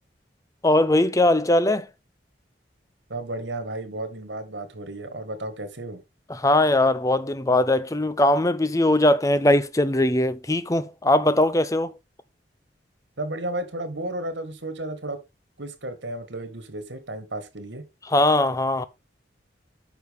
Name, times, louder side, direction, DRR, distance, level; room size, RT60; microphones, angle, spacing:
voice 1, 0.6-1.9 6.3-11.9 18.1-18.8, left 1 dB, 20° left, 0.7 m, -20 dB
voice 2, 3.1-6.0 13.2-15.2 15.6-17.8, right 1 dB, 80° right, 1.9 m, -33 dB
9.4 x 5.8 x 3.6 m
head